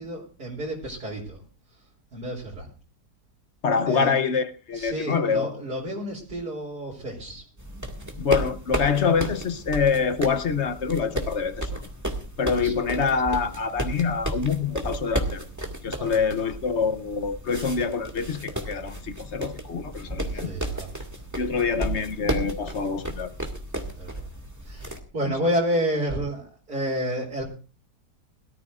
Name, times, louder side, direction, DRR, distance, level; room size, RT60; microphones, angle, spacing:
voice 1, 0.0-1.4 2.1-2.7 3.9-4.1 4.7-7.4 12.5-12.7 16.0-16.2 20.3-21.0 24.0-24.2 24.6-27.4, equal, 70° right, 3.8 m, -30 dB
voice 2, 3.6-5.6 8.2-11.8 12.4-15.5 15.8-20.5 21.4-23.3 25.3-25.4, left 5 dB, 50° left, 0.9 m, -25 dB
sound 1, 7.6-25.0, right 1 dB, 10° right, 1.9 m, -33 dB
21.5 x 13.5 x 2.5 m
omnidirectional pair, 1.8 m